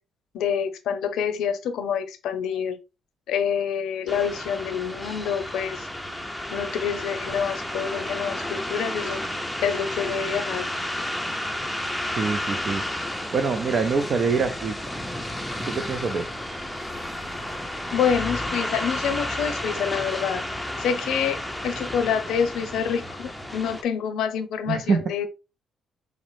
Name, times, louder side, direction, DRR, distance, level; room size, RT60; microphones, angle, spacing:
voice 1, 0.3-2.8 3.3-5.9 6.5-9.2 9.6-10.6 17.9-20.4 20.8-25.3, left 7 dB, 80° left, 0.6 m, -27 dB
sound 1, 4.1-23.8, left 1 dB, ahead, 0.5 m, -32 dB
voice 2, 12.2-12.8 13.3-14.8 15.7-16.3 24.7-25.0, right 5 dB, 50° right, 0.5 m, -24 dB
4.9 x 2.0 x 3.1 m
cardioid pair, 90°, 0 cm